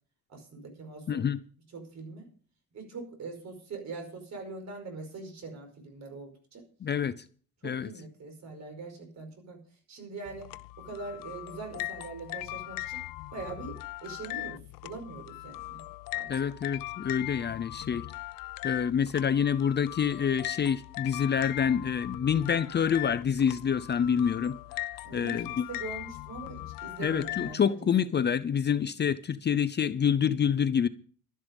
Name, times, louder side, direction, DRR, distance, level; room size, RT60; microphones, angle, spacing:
voice 1, 0.3-1.3 1.7-2.3 2.7-6.6 7.6-9.6 9.9-10.5 10.8-13.0 13.3-15.8 16.1-16.3 25.0-27.9, right 3 dB, 55° right, 5.2 m, -42 dB
voice 2, 1.1-1.4 6.8-7.2 7.6-7.9 16.3-18.1 18.6-24.6 25.1-25.6 27.0-30.9, left 7 dB, 30° left, 0.6 m, -27 dB
sound 1, 10.3-27.5, left 18 dB, 85° left, 0.5 m, -39 dB
12.0 x 11.0 x 5.3 m
cardioid pair, 145°, 33 cm